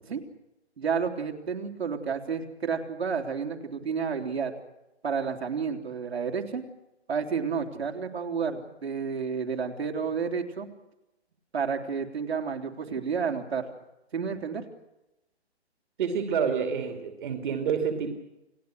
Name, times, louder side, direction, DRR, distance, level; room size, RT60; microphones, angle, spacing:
voice 1, 0.8-4.5 5.0-6.6 7.1-10.7 11.5-13.7 14.1-14.6, right 6 dB, 65° right, 2 dB, 3.5 m, -30 dB
voice 2, 16.0-18.2, right 6 dB, 45° right, 4 dB, 2.7 m, -28 dB
29.5 x 18.5 x 6.5 m, 0.92 s
figure-of-eight pair, 135°, 33 cm